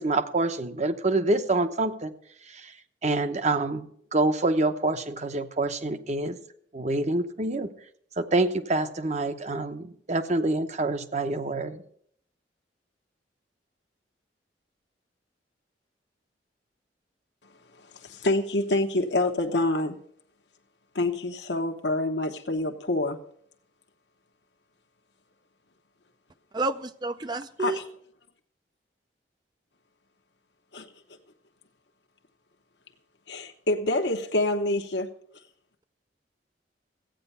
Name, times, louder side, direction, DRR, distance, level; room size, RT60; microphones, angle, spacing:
voice 1, 0.0-2.1 2.5-2.7 3.0-3.9 4.1-6.4 6.7-7.7 8.2-11.8, right 2 dB, 40° right, 9 dB, 0.9 m, -26 dB
voice 2, 17.9-20.0 20.9-23.2 27.6-27.8 30.7-30.9 33.3-35.1, left 2 dB, 70° left, 4 dB, 1.0 m, -26 dB
voice 3, 26.5-27.8, right 3 dB, 25° right, 10 dB, 0.4 m, -30 dB
14.0 x 9.1 x 5.6 m, 0.65 s
head